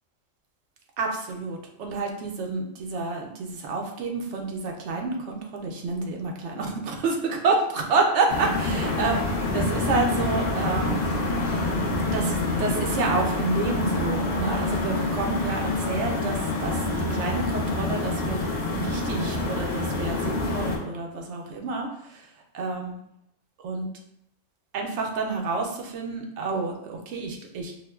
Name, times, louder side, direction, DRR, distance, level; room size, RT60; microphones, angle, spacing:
voice 1, 1.0-11.1 12.0-22.3 22.5-22.9 23.6-23.9 24.7-27.8, right 3 dB, 70° right, 1 dB, 0.8 m, -29 dB
sound 1, 8.3-20.8, left 2 dB, 50° left, 0.5 m, -27 dB
4.3 x 2.1 x 2.2 m, 0.77 s
omnidirectional pair, 1.3 m